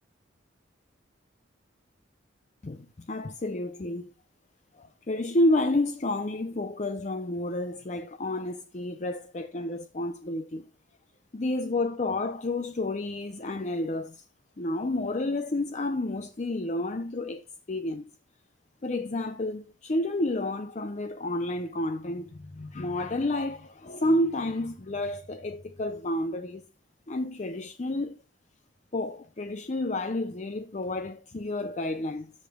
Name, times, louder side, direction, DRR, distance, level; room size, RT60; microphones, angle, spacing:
voice 1, 2.6-4.1 4.7-10.6 11.3-14.2 14.6-18.1 18.8-26.7 27.1-28.2 28.9-32.3, left 1 dB, 35° left, 0.5 m, -30 dB
14.5 x 5.2 x 2.2 m
head